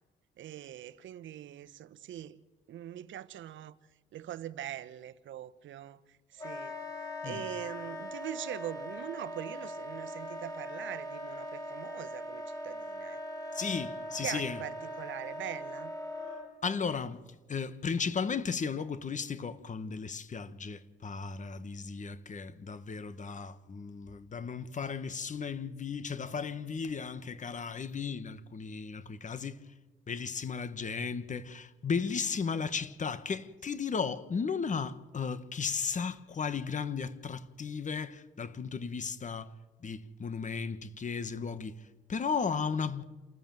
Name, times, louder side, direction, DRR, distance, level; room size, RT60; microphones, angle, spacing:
voice 1, 0.4-2.4 2.7-3.8 4.1-6.8 7.2-13.2 14.2-15.9, right 11 dB, 70° right, 0.9 m, -42 dB
Wind instrument woodwind instrument, 6.4-16.5, equal, 15° left, 6.0 m, -40 dB
voice 2, 13.5-14.6 16.6-17.2 17.5-29.6 30.1-39.5 39.8-43.0, left 5 dB, 40° left, 1.4 m, -35 dB
28.0 x 14.5 x 7.6 m
cardioid pair, 90°, 20 cm